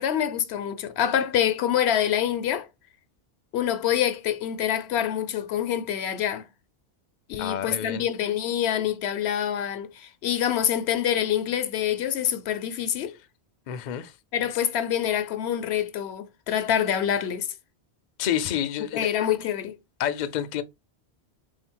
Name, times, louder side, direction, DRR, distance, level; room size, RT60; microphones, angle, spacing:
voice 1, 0.0-2.7 3.5-6.5 7.3-13.1 14.3-17.5 18.9-19.8, left 10 dB, 80° left, 0.8 m, -26 dB
voice 2, 7.4-8.1 13.7-14.1 18.2-19.1 20.0-20.6, left 10 dB, 55° left, 0.5 m, -28 dB
3.8 x 2.6 x 4.4 m
omnidirectional pair, 1.1 m